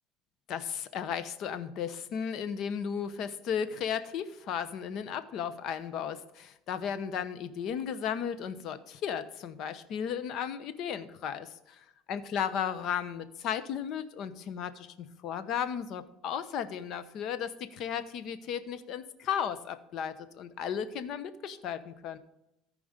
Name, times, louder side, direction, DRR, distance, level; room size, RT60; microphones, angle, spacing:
voice 1, 0.5-22.2, left 8 dB, 55° left, 12 dB, 0.9 m, -35 dB
14.0 x 5.1 x 5.1 m, 0.84 s
cardioid pair, 140°, 0 cm